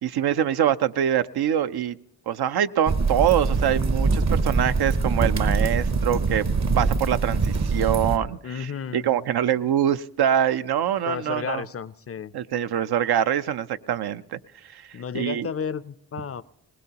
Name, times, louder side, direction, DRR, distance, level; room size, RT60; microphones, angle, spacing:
voice 1, 0.0-2.0 2.3-6.5 6.8-11.6 12.3-14.4 14.7-15.5, right 10 dB, 75° right, 0.5 m, -24 dB
sound 1, 2.9-8.2, right 4 dB, 45° right, 0.8 m, -23 dB
voice 2, 8.4-9.1 11.1-12.3 14.9-16.4, left 7 dB, 40° left, 0.4 m, -32 dB
20.0 x 19.5 x 2.9 m
cardioid pair, 55°, 39 cm